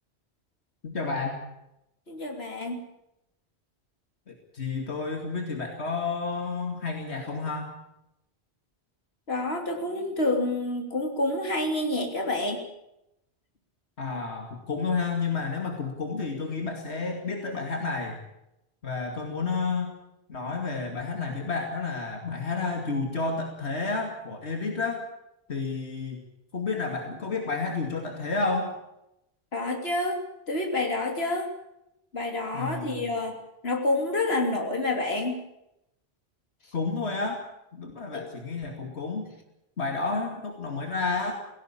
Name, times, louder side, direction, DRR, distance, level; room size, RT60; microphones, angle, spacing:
voice 1, 0.8-1.4 4.3-7.7 14.0-18.2 18.8-19.9 20.3-25.0 25.5-26.2 26.5-28.7 32.5-33.1 36.7-37.4 37.7-39.3 39.8-41.3, left 4 dB, 90° left, 3 dB, 2.7 m, -30 dB
voice 2, 2.1-2.8 9.3-12.6 29.5-31.5 32.1-33.4 33.6-35.4 38.1-38.2, left 2 dB, 70° left, 3 dB, 3.4 m, -28 dB
17.5 x 17.0 x 8.7 m, 0.84 s
omnidirectional pair, 1.1 m